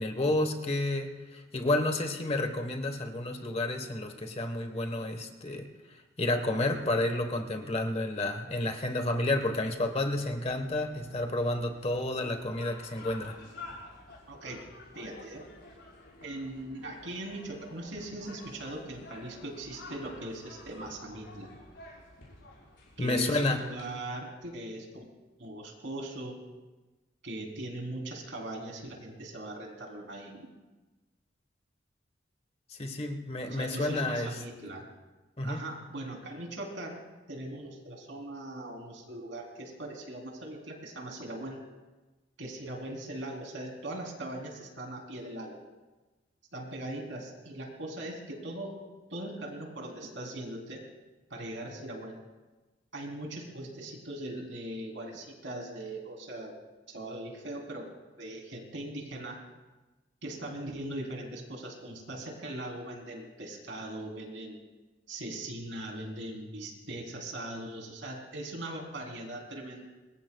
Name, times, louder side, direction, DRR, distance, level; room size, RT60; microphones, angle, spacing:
voice 1, 0.0-5.7 6.2-13.4 23.0-23.6 32.8-34.3 35.4-35.6, left 2 dB, 35° left, 6 dB, 1.2 m, -30 dB
sound 1, 9.4-23.9, left 2 dB, 80° left, 6.5 m, -51 dB
voice 2, 14.3-15.5 16.2-21.5 23.0-25.0 25.4-26.4 27.2-30.5 33.4-34.9 35.4-37.0 37.3-41.6 42.4-45.6 46.5-48.8 49.1-50.8 51.3-52.2 52.9-56.6 56.9-57.9 58.2-59.4 60.2-64.6 65.1-69.8, right 1 dB, 80° right, 1 dB, 3.5 m, -40 dB
26.5 x 21.5 x 2.3 m, 1.2 s
head